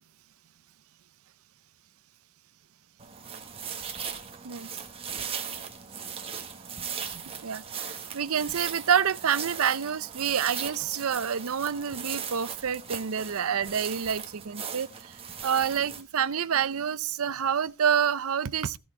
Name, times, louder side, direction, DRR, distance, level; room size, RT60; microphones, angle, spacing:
sound 1, 3.0-16.0, right 7 dB, 25° right, 1.4 m, -38 dB
voice 1, 7.4-15.1 15.4-18.8, right 8 dB, 65° right, 0.6 m, -28 dB
15.0 x 6.3 x 4.5 m
head